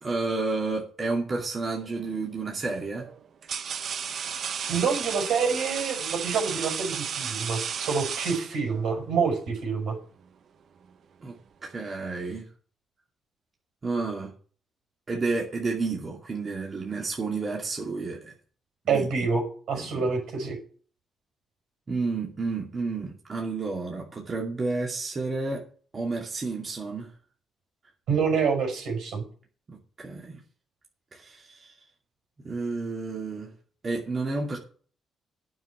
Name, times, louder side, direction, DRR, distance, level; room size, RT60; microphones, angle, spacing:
voice 1, 0.0-3.1 11.2-11.4 11.6-12.5 13.8-14.3 15.1-18.3 18.8-19.3 19.8-20.1 21.9-25.6 25.9-27.1 29.7-30.4 31.1-31.8 32.4-33.5 33.8-34.6, right 3 dB, 35° right, -1 dB, 2.5 m, -31 dB
sound 1, 1.8-2.2 3.0-8.9, right 7 dB, 60° right, 1.0 m, -33 dB
voice 2, 4.7-10.0 18.9-19.4 19.7-20.6 28.1-29.2, right 5 dB, 80° right, 3 dB, 5.4 m, -27 dB
9.4 x 5.9 x 8.5 m, 0.43 s
cardioid pair, 90°, 0 cm